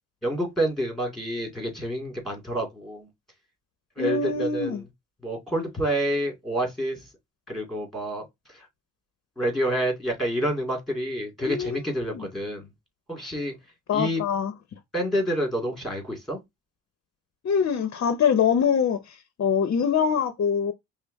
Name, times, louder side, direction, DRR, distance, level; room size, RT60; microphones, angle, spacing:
voice 1, 0.2-3.1 4.0-4.8 5.2-7.0 7.5-8.2 9.4-12.7 13.1-13.5 13.9-14.2 14.9-16.4, right 1 dB, ahead, 2.8 m, -28 dB
voice 2, 4.0-4.8 11.4-11.8 12.1-12.3 13.9-14.5 17.4-20.7, left 7 dB, 50° left, 0.8 m, -24 dB
5.4 x 2.1 x 4.1 m
cardioid pair, 90°, 30 cm